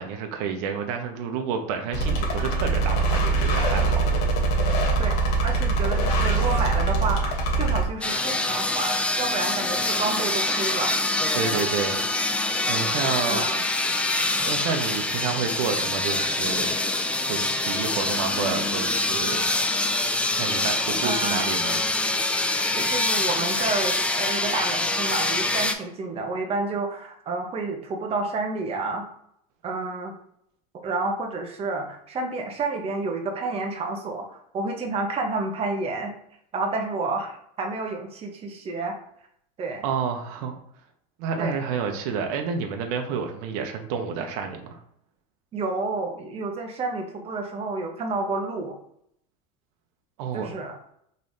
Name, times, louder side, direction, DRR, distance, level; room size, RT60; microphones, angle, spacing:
voice 1, 0.0-4.0 11.3-12.1 12.6-13.4 13.9-14.0 14.4-16.7 17.3-19.4 20.3-21.9 39.8-40.5 41.2-44.8 50.2-50.5, right 6 dB, 65° right, 4 dB, 0.8 m, -29 dB
sound 1, 1.9-7.8, right 3 dB, 75° left, 1.1 m, -23 dB
voice 2, 5.4-11.0 13.3-13.6 21.0-21.5 22.7-29.1 29.6-30.2 30.8-36.1 36.5-39.0 39.6-39.9 41.4-41.6 45.5-48.7 50.3-50.8, right 3 dB, 30° right, 3 dB, 1.0 m, -30 dB
sound 2, 8.0-25.7, left 2 dB, 5° left, 0.3 m, -25 dB
5.4 x 3.2 x 2.7 m, 0.70 s
supercardioid pair, 130°, 20 cm